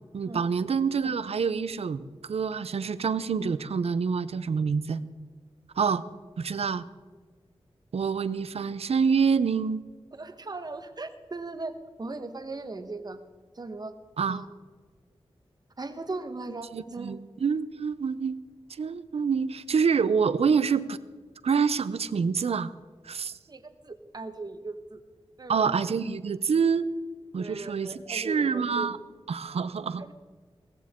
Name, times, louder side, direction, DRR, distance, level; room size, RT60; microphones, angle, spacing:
voice 1, 0.1-5.0 5.8-6.0 6.4-6.9 7.9-9.8 14.2-14.4 16.7-18.4 18.8-21.0 21.4-22.7 23.0-23.3 25.5-26.9 27.3-29.0 29.3-30.0, right 6 dB, 85° right, 15 dB, 0.6 m, -26 dB
voice 2, 10.1-13.2 13.5-13.9 14.3-14.5 15.8-17.1 23.5-25.0 25.4-25.7 27.4-28.9, right 3 dB, 40° right, 8 dB, 1.2 m, -38 dB
17.5 x 15.0 x 3.7 m, 1.5 s
wide cardioid pair, 115°, 10 cm